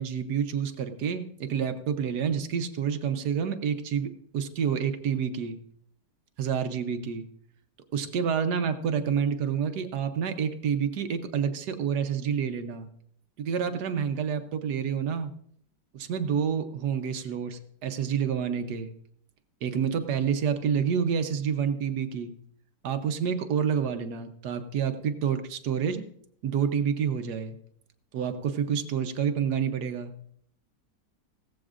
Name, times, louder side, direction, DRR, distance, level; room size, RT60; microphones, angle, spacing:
voice 1, 0.0-5.6 6.4-7.3 7.9-12.9 13.4-15.3 15.9-18.9 19.6-22.3 22.8-26.0 26.4-27.6 28.1-30.1, right 7 dB, 70° right, 8 dB, 1.4 m, -28 dB
16.5 x 14.0 x 2.5 m, 0.65 s
omnidirectional pair, 1.8 m